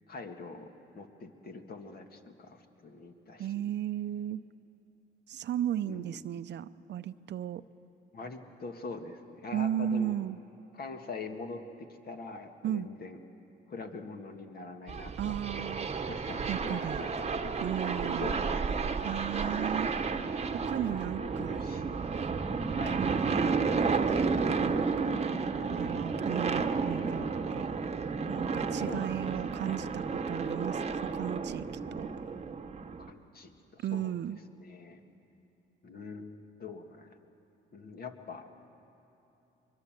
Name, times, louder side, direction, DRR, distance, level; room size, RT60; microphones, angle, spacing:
voice 1, 0.1-3.6 5.8-6.1 8.1-10.1 10.7-13.2 13.7-15.4 16.1-17.7 18.2-19.0 20.8-22.0 22.8-23.0 28.9-29.9 33.1-34.1 34.5-35.0 35.8-37.2 37.7-38.5, left 3 dB, 50° left, 5 dB, 2.0 m, -44 dB
voice 2, 3.4-4.4 5.3-7.6 9.5-10.4 12.6-12.9 15.2-15.9 16.5-17.0 17.6-18.4 19.0-19.9 20.6-21.6 22.9-23.5 24.0-24.3 24.6-25.1 25.6-27.7 28.3-32.1 33.8-34.4, right 10 dB, 60° right, 14 dB, 0.6 m, -35 dB
sound 1, 14.9-33.1, right 5 dB, 35° right, 1.1 m, -32 dB
23.0 x 22.5 x 7.5 m, 2.9 s
cardioid pair, 90°, 20 cm